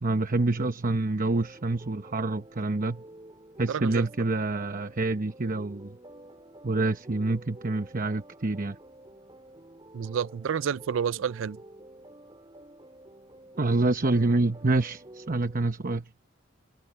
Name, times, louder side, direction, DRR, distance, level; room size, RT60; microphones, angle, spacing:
voice 1, 0.0-3.0 3.6-6.0 6.6-8.8 13.6-16.1, right 2 dB, 45° right, 1.0 m, -27 dB
sound 1, 1.3-15.6, right 1 dB, 25° right, 4.1 m, -50 dB
voice 2, 3.7-4.3 9.9-11.6, right 7 dB, 80° right, 0.4 m, -30 dB
head